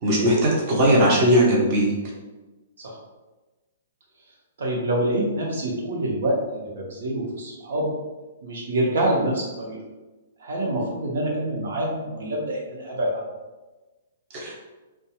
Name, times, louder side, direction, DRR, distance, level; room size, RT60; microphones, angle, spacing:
voice 1, 0.0-1.9 14.3-14.6, equal, 25° right, -3 dB, 0.6 m, -19 dB
voice 2, 4.6-7.9 8.4-9.8 10.4-13.2, right 1 dB, 70° right, -3 dB, 0.8 m, -26 dB
2.4 x 2.2 x 2.9 m, 1.2 s
hypercardioid pair, 175°, 0 cm